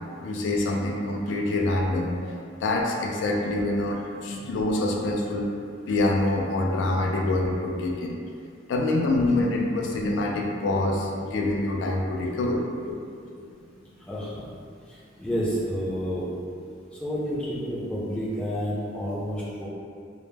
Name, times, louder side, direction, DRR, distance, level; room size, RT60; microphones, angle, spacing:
voice 1, 0.2-5.5 5.9-8.2 8.7-13.0, left 2 dB, 75° left, -1 dB, 0.3 m, -26 dB
voice 2, 14.0-14.5 14.9-16.3 16.9-19.7, equal, 5° left, -8 dB, 0.5 m, -30 dB
2.1 x 2.0 x 3.1 m, 2.3 s
head